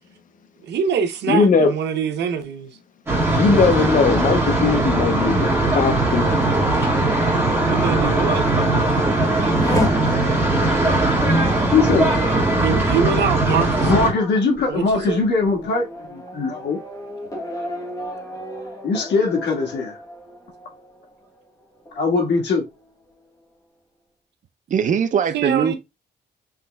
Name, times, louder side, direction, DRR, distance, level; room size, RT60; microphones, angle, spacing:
voice 1, 0.6-2.8 7.7-8.5 12.5-13.9 14.7-15.2 25.3-25.8, right 7 dB, 80° right, 0.8 m, -24 dB
voice 2, 1.3-1.7 3.4-6.3, left 5 dB, 50° left, 0.6 m, -19 dB
sound 1, 3.1-14.1, right 2 dB, 15° right, 1.7 m, -19 dB
Race car auto racing / Accelerating revving vroom, 8.4-21.5 21.9-22.6, left 1 dB, 20° left, 1.1 m, -33 dB
voice 3, 11.7-12.2 13.9-16.8 18.8-20.0 21.9-22.6, left 4 dB, 80° left, 1.6 m, -21 dB
voice 4, 24.7-25.7, right 7 dB, 45° right, 0.5 m, -20 dB
5.7 x 3.1 x 2.2 m
cardioid pair, 130°, 17 cm